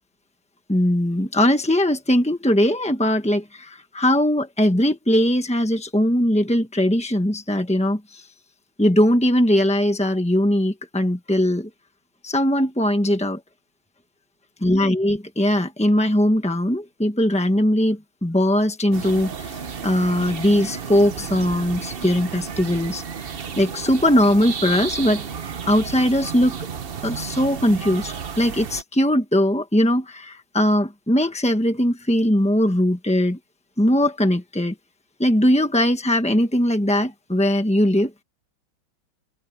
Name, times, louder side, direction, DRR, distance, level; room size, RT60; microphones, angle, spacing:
voice 1, 0.7-8.3 8.8-11.7 12.2-13.4 14.6-23.0 23.6-25.2 25.7-26.5 27.0-33.4 33.8-34.7 35.2-38.1, left 1 dB, 5° left, 0.6 m, -20 dB
sound 1, 18.9-28.8, right 6 dB, 60° right, 0.6 m, -33 dB
omnidirectional pair, 2.3 m